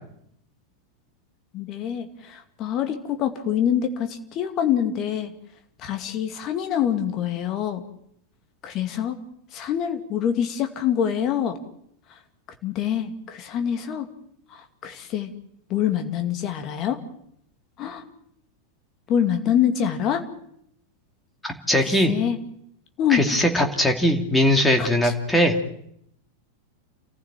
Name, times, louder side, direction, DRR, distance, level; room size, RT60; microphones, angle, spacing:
voice 1, 1.5-5.3 5.8-7.8 8.6-9.2 9.5-11.6 12.6-14.1 14.5-15.3 15.7-17.0 17.8-18.0 19.1-20.2 21.7-22.4 23.0-23.2 24.8-25.1, left 9 dB, 35° left, 6 dB, 2.4 m, -25 dB
voice 2, 21.4-22.1 23.1-25.5, equal, 5° left, 3 dB, 2.7 m, -20 dB
29.0 x 15.0 x 7.5 m, 0.73 s
figure-of-eight pair, 90°, 0 cm